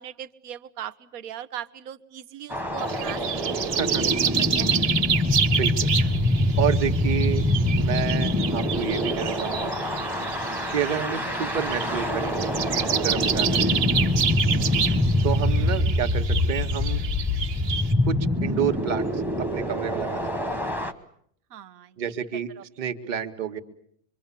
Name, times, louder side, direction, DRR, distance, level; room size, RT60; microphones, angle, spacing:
voice 1, 0.0-3.2 3.5-4.1 4.4-5.1 11.2-11.6 21.5-21.9 22.6-22.7, right 10 dB, 70° right, 13 dB, 1.7 m, -39 dB
sound 1, 2.5-20.9, left 1 dB, 5° right, 1.1 m, -25 dB
sound 2, 2.8-17.9, right 8 dB, 85° right, 3.2 m, -29 dB
voice 2, 3.8-4.2 5.5-5.9 6.6-7.4 7.7-9.7 10.7-12.5 12.9-13.8 15.2-17.0 18.1-20.2 20.5-20.6 22.0-22.5 22.8-23.6, right 8 dB, 30° right, 7 dB, 2.0 m, -29 dB
25.5 x 25.0 x 8.6 m, 0.67 s
supercardioid pair, 165°, 49 cm